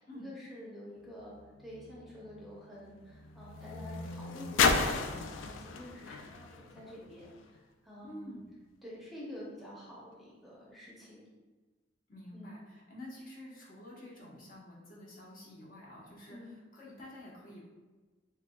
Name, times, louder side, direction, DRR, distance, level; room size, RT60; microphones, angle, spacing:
voice 1, 0.0-8.4 8.8-11.3 12.3-12.6 16.3-16.5, left 1 dB, ahead, -6 dB, 0.7 m, -48 dB
sound 1, 1.1-7.6 8.4-8.5, left 4 dB, 80° left, 0.4 m, -34 dB
voice 2, 8.0-8.4 12.1-16.4 16.7-17.6, left 1 dB, 50° left, -4 dB, 1.0 m, -49 dB
6.5 x 2.3 x 2.3 m, 1.3 s
head